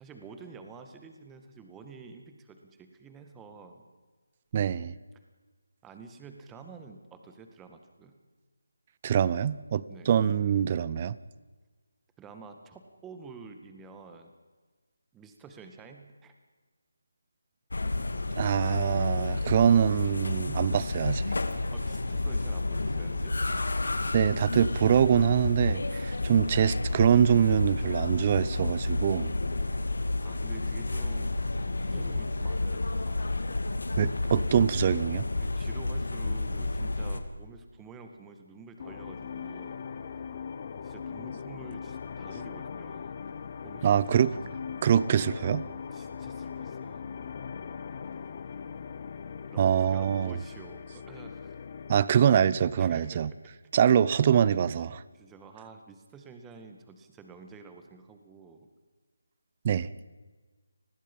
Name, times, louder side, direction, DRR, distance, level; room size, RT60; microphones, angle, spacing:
voice 1, 0.0-3.8 5.8-8.2 9.9-10.1 12.2-14.3 15.1-16.3 21.7-23.4 30.2-31.5 31.8-33.3 35.3-39.8 40.8-43.2 43.6-44.6 45.9-47.1 49.5-51.6 52.8-53.3 55.1-58.7, right 4 dB, 10° right, 6 dB, 1.9 m, -49 dB
voice 2, 4.5-4.9 9.0-11.2 18.4-21.3 24.1-29.3 34.0-35.2 43.8-44.3 44.8-45.6 49.6-50.3 51.9-53.3 53.7-55.0 59.6-59.9, right 8 dB, 30° right, 19 dB, 0.8 m, -24 dB
sound 1, 17.7-37.2, left 2 dB, 70° left, 2.4 m, -30 dB
sound 2, 38.8-52.1, left 6 dB, 35° left, 1.5 m, -40 dB
29.5 x 20.5 x 5.6 m, 1.4 s
figure-of-eight pair, 160°, 0 cm